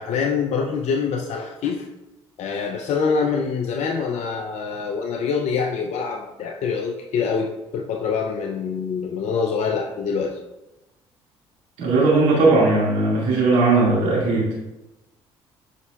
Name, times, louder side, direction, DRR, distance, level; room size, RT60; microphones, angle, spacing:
voice 1, 0.0-1.9 2.4-10.4, left 5 dB, 60° left, 2 dB, 0.6 m, -25 dB
voice 2, 11.8-14.5, right 3 dB, 75° right, -5 dB, 2.2 m, -18 dB
8.1 x 5.5 x 2.4 m, 0.98 s
hypercardioid pair, 65°, 13 cm